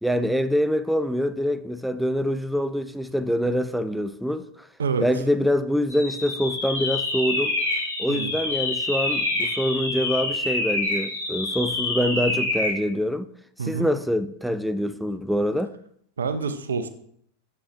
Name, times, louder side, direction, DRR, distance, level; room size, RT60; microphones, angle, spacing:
voice 1, 0.0-4.5 5.0-7.6 8.0-13.3 13.6-15.7, equal, ahead, 0.4 m, -25 dB
sound 1, 5.9-12.8, left 2 dB, 85° left, 2.5 m, -27 dB
voice 2, 13.6-13.9 16.2-16.9, right 5 dB, 80° right, 0.6 m, -27 dB
7.1 x 5.6 x 3.3 m
hypercardioid pair, 95°, 0 cm